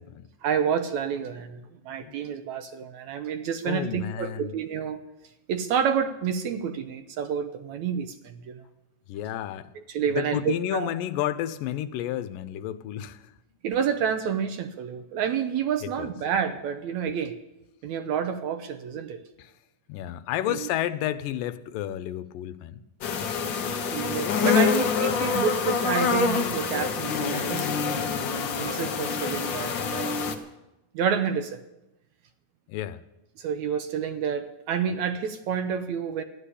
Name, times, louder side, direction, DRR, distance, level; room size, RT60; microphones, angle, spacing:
voice 1, 0.4-5.0 5.5-8.7 9.8-10.9 13.6-17.4 17.8-19.2 20.5-20.7 23.9-27.8 28.6-30.2 30.9-31.6 33.4-36.2, right 7 dB, 75° right, 9 dB, 1.9 m, -29 dB
voice 2, 3.7-4.5 9.1-9.7 10.1-13.3 15.8-16.1 19.4-19.5 19.9-22.8 32.7-33.0, left 12 dB, 85° left, 13 dB, 2.4 m, -31 dB
sound 1, 23.0-30.3, left 5 dB, 70° left, 1.1 m, -26 dB
14.5 x 11.5 x 8.4 m, 0.94 s
omnidirectional pair, 3.8 m